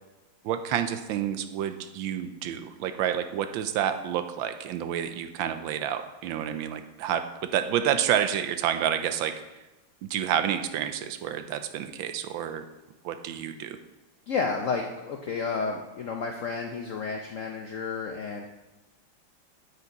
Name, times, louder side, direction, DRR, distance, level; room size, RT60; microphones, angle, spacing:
voice 1, 0.4-7.2 7.5-9.3 10.1-12.6 13.0-13.8, right 9 dB, 85° right, 9 dB, 1.4 m, -29 dB
voice 2, 14.3-18.5, left 4 dB, 65° left, 3 dB, 0.8 m, -31 dB
9.2 x 8.5 x 4.0 m, 1.1 s
omnidirectional pair, 2.1 m